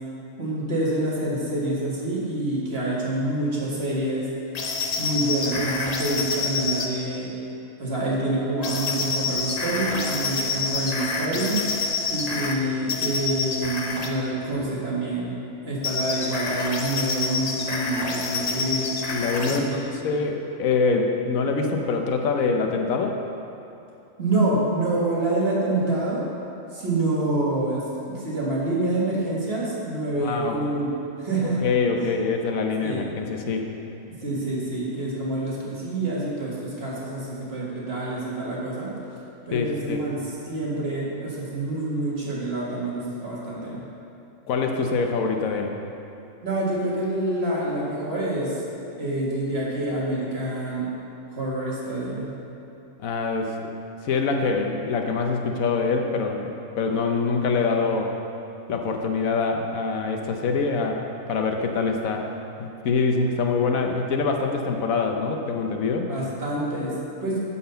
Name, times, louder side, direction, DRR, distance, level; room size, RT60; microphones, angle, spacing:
voice 1, 0.4-4.3 5.0-7.3 7.8-11.6 12.1-15.4 15.6-18.9 19.5-19.8 24.2-26.2 26.7-30.9 31.2-31.6 32.0-32.1 32.8-33.0 34.2-38.9 39.5-43.8 46.4-48.6 48.9-50.9 51.3-52.3 66.1-67.4, right 2 dB, 45° right, -6 dB, 1.9 m, -27 dB
sound 1, 4.5-6.9 8.6-12.5 12.9-14.1 15.8-19.6, left 4 dB, 45° left, 0.5 m, -28 dB
voice 2, 19.1-23.2 30.2-30.6 31.4-33.6 39.5-40.0 44.5-45.7 53.0-53.7 54.0-58.1 58.7-61.0 61.3-62.2 62.6-66.1, left 4 dB, 75° left, 3 dB, 1.1 m, -25 dB
9.6 x 4.2 x 6.7 m, 2.9 s
omnidirectional pair, 1.5 m